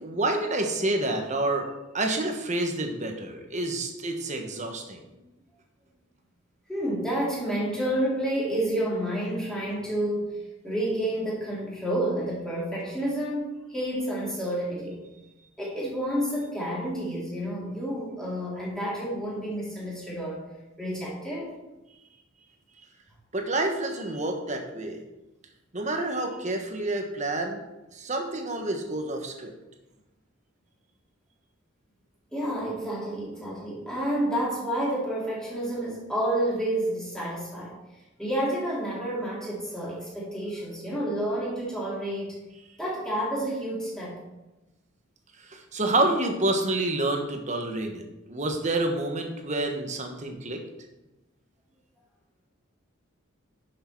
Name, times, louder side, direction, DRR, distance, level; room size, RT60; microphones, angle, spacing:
voice 1, 0.0-1.7 1.9-5.0 23.3-25.0 25.7-27.6 27.9-29.5 45.5-50.6, right 2 dB, 35° right, 4 dB, 1.4 m, -28 dB
voice 2, 6.7-10.4 10.6-15.0 15.6-20.4 20.8-21.5 32.3-37.8 38.2-42.4 42.8-44.2, right 1 dB, 5° left, -7 dB, 3.5 m, -29 dB
10.5 x 6.6 x 4.6 m, 1.0 s
head